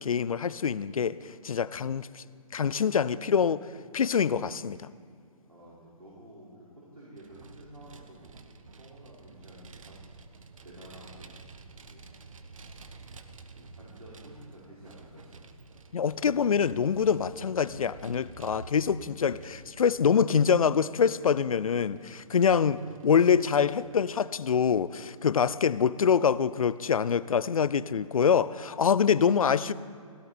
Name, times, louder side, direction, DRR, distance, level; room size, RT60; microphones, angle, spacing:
voice 1, 0.0-2.2 2.5-3.7 3.9-4.9 15.9-29.7, left 7 dB, 70° left, 18 dB, 0.5 m, -25 dB
voice 2, 5.5-8.3 8.8-10.0 10.6-11.3 11.8-12.1 12.6-12.8 13.5-15.8, right 1 dB, 85° right, -7 dB, 4.7 m, -51 dB
Vehicle, 7.2-24.1, right 4 dB, 65° right, 1.2 m, -50 dB
17.0 x 15.0 x 4.3 m, 2.3 s
figure-of-eight pair, 140°, 18 cm